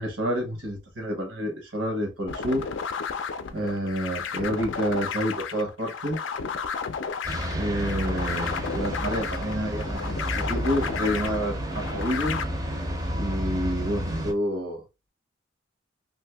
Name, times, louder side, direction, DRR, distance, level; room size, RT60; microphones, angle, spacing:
voice 1, 0.0-2.7 3.5-6.2 7.5-12.4 13.2-14.8, equal, 85° right, 1.1 m, -29 dB
sound 1, 2.3-12.4, left 6 dB, 70° left, 0.4 m, -33 dB
sound 2, 7.2-14.3, equal, 20° right, 0.5 m, -31 dB
2.6 x 2.6 x 3.4 m
head